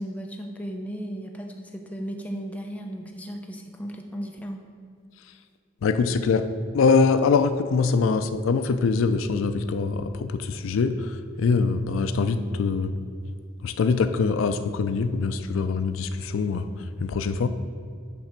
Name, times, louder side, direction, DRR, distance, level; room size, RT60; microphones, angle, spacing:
voice 1, 0.0-4.7 8.0-8.3, equal, 5° left, 2 dB, 0.5 m, -35 dB
voice 2, 5.8-6.5 6.7-12.9 13.6-16.7 17.0-17.5, left 4 dB, 80° left, 10 dB, 0.4 m, -23 dB
8.6 x 3.3 x 5.8 m, 2.2 s
head